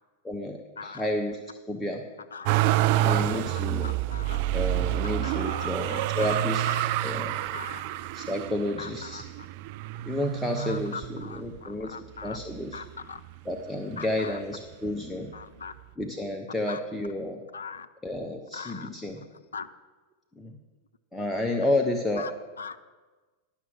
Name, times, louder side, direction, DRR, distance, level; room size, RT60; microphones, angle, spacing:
voice 1, 0.2-1.4 1.7-2.0 3.0-3.9 4.5-6.7 7.0-7.6 8.1-9.2 10.1-12.0 12.2-12.8 13.4-15.3 16.0-17.4 18.0-19.2 20.3-20.6 21.1-22.3, left 1 dB, 5° left, 2 dB, 0.7 m, -31 dB
Motor vehicle (road), 2.4-11.6 12.2-13.0 13.3-14.4 15.4-15.5, right 14 dB, 45° right, 0.3 m, -28 dB
voice 2, 3.8-4.4 5.2-7.0 7.5-7.8 8.8-9.5 10.6-12.4 12.7-13.2 14.0-14.4 15.3-15.8 16.7-16.8 17.5-17.9 18.5-18.9 19.2-19.7 22.2-22.3 22.6-22.8, left 6 dB, 70° left, 12 dB, 0.4 m, -40 dB
11.0 x 5.8 x 6.0 m, 1.3 s
figure-of-eight pair, 90°, 0 cm